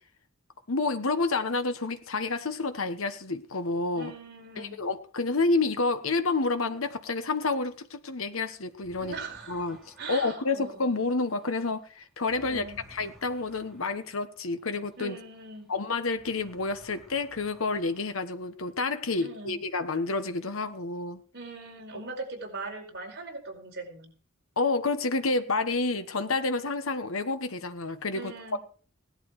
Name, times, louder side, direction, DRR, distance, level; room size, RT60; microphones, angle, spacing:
voice 1, 0.7-4.1 4.6-9.1 9.5-9.8 10.1-12.6 12.9-15.2 15.7-21.2 24.6-28.6, left 3 dB, 80° left, 1.2 m, -29 dB
voice 2, 4.0-4.8 9.0-9.7 10.0-11.0 12.4-12.8 15.0-15.7 19.2-19.6 21.3-24.1 28.1-28.6, right 3 dB, 55° right, 4.6 m, -40 dB
sound 1, 8.7-15.7 16.0-18.7, right 1 dB, ahead, 4.2 m, -56 dB
17.5 x 11.5 x 4.8 m
head